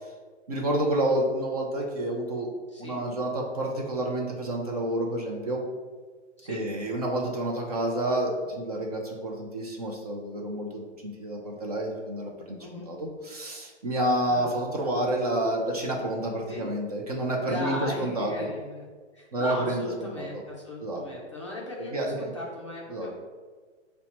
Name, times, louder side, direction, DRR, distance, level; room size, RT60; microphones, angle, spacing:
voice 1, 0.5-2.5 2.8-5.6 6.5-12.6 12.9-13.0 13.2-18.3 19.3-20.4 20.8-21.0 21.9-22.1 22.9-23.1, right 1 dB, 35° right, -1 dB, 0.4 m, -29 dB
voice 2, 12.6-12.9 14.2-14.7 16.5-16.7 17.4-18.9 19.1-23.1, left 1 dB, 30° left, -4 dB, 0.4 m, -37 dB
5.6 x 2.1 x 2.8 m, 1.4 s
hypercardioid pair, 160°, 36 cm